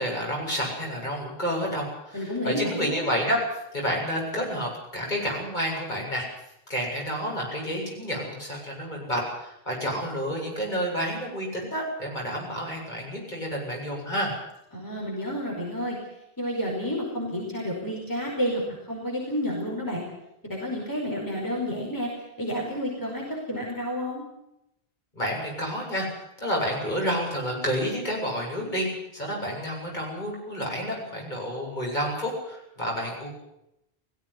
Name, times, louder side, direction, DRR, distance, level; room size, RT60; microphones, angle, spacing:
voice 1, 0.0-3.4 3.7-6.3 6.7-14.3 25.2-26.1 26.4-33.3, equal, 45° left, -3 dB, 8.2 m, -29 dB
voice 2, 2.1-3.0 14.7-16.0 16.4-20.0 20.4-22.1 22.4-24.2, equal, 20° left, -2 dB, 5.0 m, -30 dB
19.0 x 15.5 x 9.8 m, 0.83 s
omnidirectional pair, 1.0 m